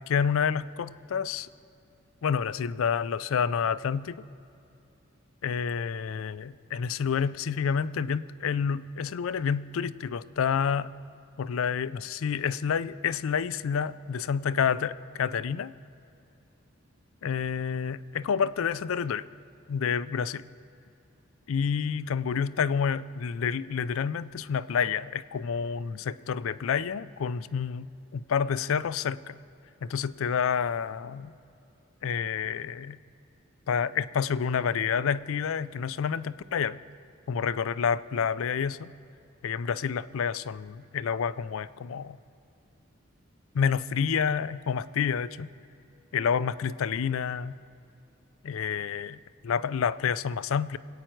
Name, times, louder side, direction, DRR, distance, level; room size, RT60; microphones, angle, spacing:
voice 1, 0.1-1.5 2.2-4.2 5.4-10.9 11.4-15.7 17.2-19.3 19.7-20.5 21.5-27.9 28.1-29.4 29.8-31.3 32.0-33.0 33.7-36.8 37.3-38.9 39.4-42.2 43.5-45.5 46.1-47.6 48.4-49.2 49.4-50.8, left 7 dB, 80° left, 16 dB, 0.4 m, -29 dB
23.5 x 8.9 x 4.6 m, 2.7 s
head